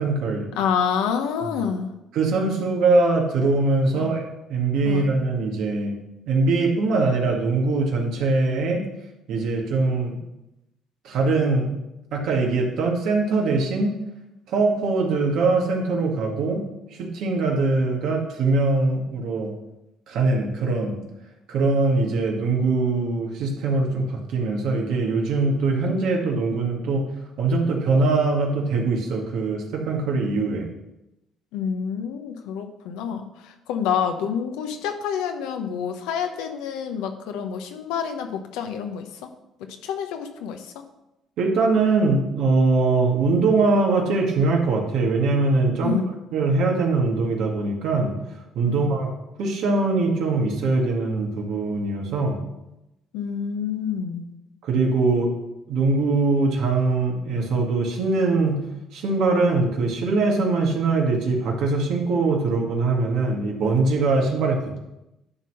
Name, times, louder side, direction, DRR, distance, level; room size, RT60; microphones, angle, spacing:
voice 1, 0.0-0.5 1.4-1.5 2.1-5.9 6.3-8.8 9.3-10.2 11.0-11.7 12.1-13.9 14.5-16.6 17.0-19.5 20.1-21.0 21.5-27.1 27.4-30.7 41.4-46.0 46.3-48.1 48.6-49.1 49.4-52.4 54.6-55.3 55.7-58.6 58.9-64.8, right 3 dB, 70° right, 0 dB, 2.0 m, -22 dB
voice 2, 0.5-1.9 3.9-4.1 4.8-5.1 31.5-39.3 39.8-40.7 45.8-46.1 48.7-48.9 53.1-54.3, left 7 dB, 80° left, 6 dB, 1.0 m, -28 dB
11.0 x 3.8 x 6.4 m, 0.93 s
supercardioid pair, 70°, 0 cm